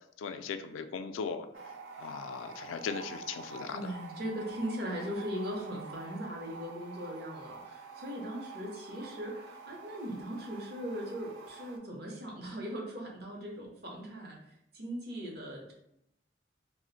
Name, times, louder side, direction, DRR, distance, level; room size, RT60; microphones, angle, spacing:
voice 1, 0.2-1.5 2.0-4.0, left 5 dB, 90° left, 9 dB, 0.3 m, -38 dB
sound 1, 1.5-11.8, right 4 dB, 90° right, 0.5 m, -47 dB
voice 2, 3.7-15.7, equal, 55° right, -1 dB, 0.7 m, -39 dB
2.4 x 2.1 x 3.9 m, 0.78 s
head